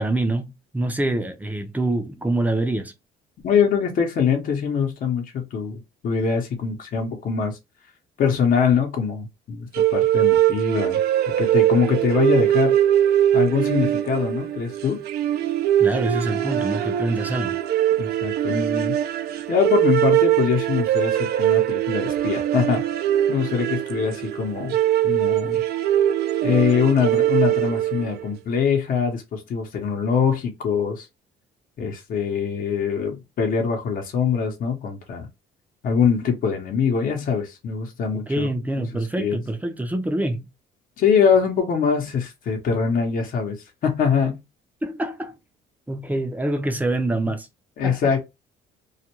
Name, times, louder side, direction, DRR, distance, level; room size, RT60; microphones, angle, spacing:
voice 1, 0.0-2.9 15.8-17.6 38.1-40.5 44.8-45.4 45.9-47.5 47.8-48.0, right 2 dB, 10° right, 0.5 m, -25 dB
voice 2, 3.4-5.2 5.5-7.6 8.2-11.0 11.4-12.8 13.3-15.0 18.0-19.0 19.5-22.8 23.3-24.8 25.0-25.6 26.4-31.1 31.8-35.3 35.8-38.5 39.2-39.4 41.0-43.6 43.8-44.4 47.8-48.2, left 6 dB, 55° left, 0.8 m, -23 dB
sound 1, 9.7-28.2, right 12 dB, 70° right, 0.4 m, -22 dB
2.4 x 2.2 x 2.9 m
cardioid pair, 110°, 17 cm